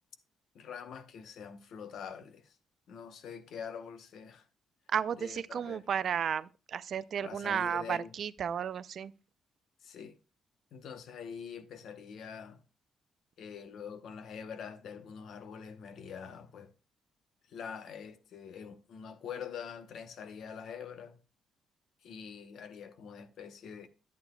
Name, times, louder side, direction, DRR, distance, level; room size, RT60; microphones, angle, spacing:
voice 1, 0.5-2.5 2.9-4.4 5.1-5.9 7.2-8.1 9.8-10.2 10.7-12.6 13.4-16.7 17.5-21.2 22.0-23.9, left 7 dB, 70° left, 0.8 m, -45 dB
voice 2, 4.9-9.1, right 8 dB, 60° right, 0.4 m, -33 dB
11.0 x 8.4 x 2.2 m
cardioid pair, 90°, 0 cm